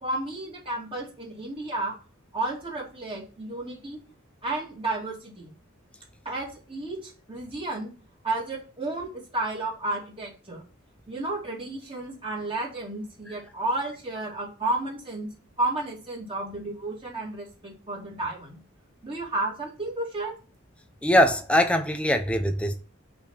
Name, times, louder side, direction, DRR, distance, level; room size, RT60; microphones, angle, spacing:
voice 1, 0.0-1.9 2.3-4.0 4.4-5.5 6.2-7.9 8.2-10.6 11.1-15.3 15.6-18.6 19.0-20.3, right 2 dB, 25° right, 2.6 m, -32 dB
voice 2, 21.0-22.7, equal, 5° left, 0.6 m, -22 dB
5.8 x 4.3 x 5.6 m
head